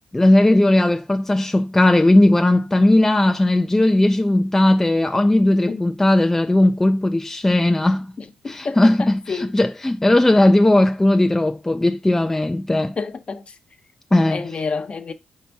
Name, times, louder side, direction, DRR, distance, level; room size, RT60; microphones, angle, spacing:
voice 1, 0.1-8.1 8.5-12.9 14.1-14.4, left 1 dB, 10° left, 0.4 m, -17 dB
voice 2, 8.2-9.5 13.0-13.5 14.3-15.1, left 4 dB, 40° left, 0.7 m, -29 dB
4.2 x 2.7 x 4.6 m
cardioid pair, 75°, 3 cm